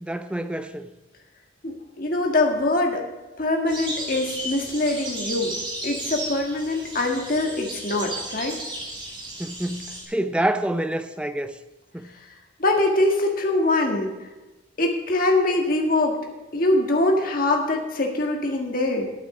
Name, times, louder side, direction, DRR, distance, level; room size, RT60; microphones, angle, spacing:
voice 1, 0.0-0.9 9.4-11.5 11.9-12.0, right 1 dB, 5° right, 0.4 m, -27 dB
voice 2, 1.6-3.1 3.4-5.6 5.8-8.6 12.6-14.1 14.8-16.2 16.5-19.1, left 2 dB, 45° left, 1.6 m, -23 dB
sound 1, 3.7-10.0, right 1 dB, 25° right, 3.2 m, -34 dB
9.0 x 8.8 x 6.6 m
head